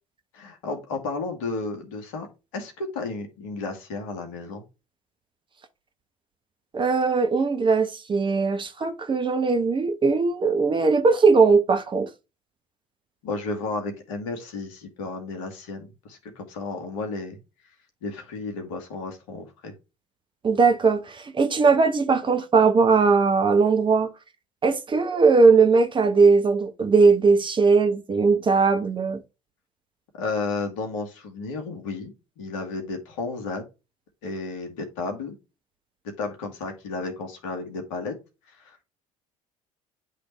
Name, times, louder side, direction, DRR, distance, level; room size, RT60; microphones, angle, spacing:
voice 1, 0.3-4.6 13.2-17.4 18.0-19.7 30.1-33.6 34.2-35.4 36.2-38.1 38.5-38.8, left 3 dB, 65° left, 1.8 m, -33 dB
voice 2, 6.7-12.1 20.4-24.1 24.6-29.2, right 4 dB, 30° right, 1.2 m, -19 dB
10.0 x 3.4 x 3.2 m
figure-of-eight pair, 60°, 18 cm